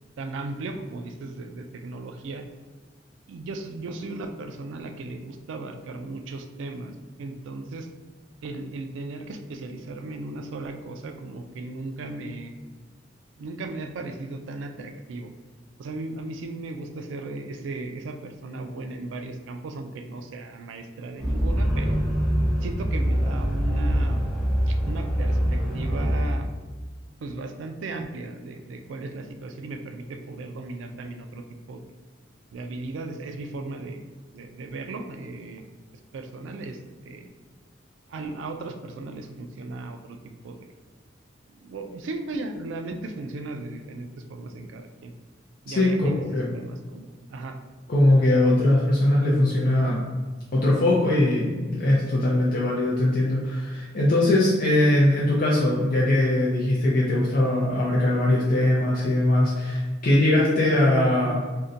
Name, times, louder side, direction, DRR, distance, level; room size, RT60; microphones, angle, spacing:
voice 1, 0.2-2.4 3.3-6.9 7.2-7.9 8.4-12.5 13.4-15.3 15.8-22.0 22.6-24.2 24.7-26.5 27.2-31.8 32.5-34.0 34.3-35.6 36.1-37.3 38.1-40.2 40.4-40.7 41.6-45.1 45.7-47.6, right 2 dB, 85° right, 6 dB, 0.3 m, -36 dB
sound 1, 21.2-26.2, equal, ahead, 0.5 m, -24 dB
voice 2, 45.7-46.5 47.9-50.0 50.5-61.4, left 1 dB, 50° left, -6 dB, 0.5 m, -21 dB
2.6 x 2.1 x 3.7 m, 1.4 s
head